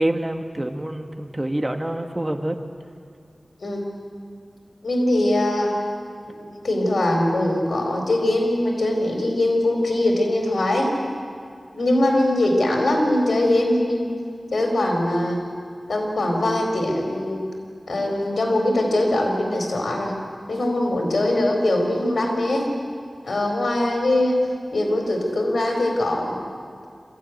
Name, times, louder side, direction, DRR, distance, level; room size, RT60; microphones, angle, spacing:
voice 1, 0.0-2.6, right 1 dB, 20° right, 5 dB, 1.7 m, -26 dB
voice 2, 4.8-5.7 6.4-10.9 11.7-14.1 14.5-15.4 15.9-17.4 17.9-20.1 20.5-22.7 23.2-24.4 24.7-26.4, left 1 dB, 85° left, 2 dB, 4.5 m, -22 dB
26.0 x 15.5 x 9.4 m, 2.3 s
wide cardioid pair, 75°, 0 cm